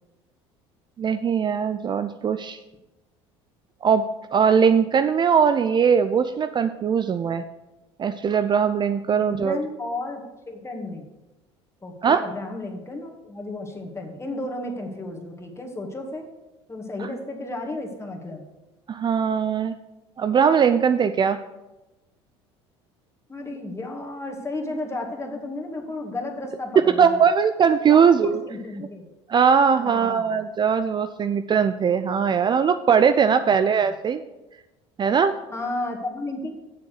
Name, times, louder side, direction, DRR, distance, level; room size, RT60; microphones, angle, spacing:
voice 1, 1.0-2.6 3.8-4.0 4.3-7.4 8.0-9.6 12.0-12.2 18.9-19.7 20.2-21.4 26.8-28.4 29.3-34.2 35.0-35.3, right 7 dB, 30° right, 10 dB, 0.5 m, -20 dB
voice 2, 9.2-10.2 10.5-11.1 11.8-16.3 16.7-18.5 23.3-27.2 27.9-29.1 29.8-30.5 33.2-33.6 35.5-36.5, left 2 dB, 20° left, 2 dB, 2.1 m, -33 dB
7.5 x 7.1 x 6.6 m, 1.0 s
hypercardioid pair, 75°, 14 cm